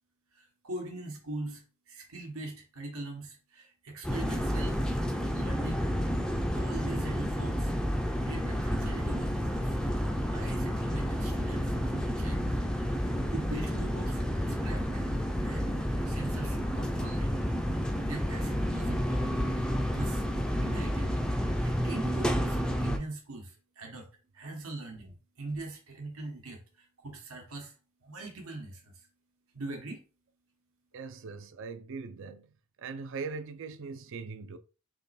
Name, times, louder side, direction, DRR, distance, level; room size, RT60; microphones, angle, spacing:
voice 1, 0.3-4.9 5.3-5.9 6.5-7.7 8.2-9.8 10.3-12.6 12.9-15.2 15.4-17.4 18.0-20.2 20.5-21.2 21.6-24.1 24.3-27.7 28.0-28.9 29.5-30.0, right 2 dB, 80° right, 1.2 m, -42 dB
sound 1, 4.0-23.0, equal, 5° left, 0.4 m, -30 dB
voice 2, 30.9-32.5 32.8-34.6, right 4 dB, 60° right, 0.4 m, -40 dB
3.6 x 3.0 x 4.2 m
head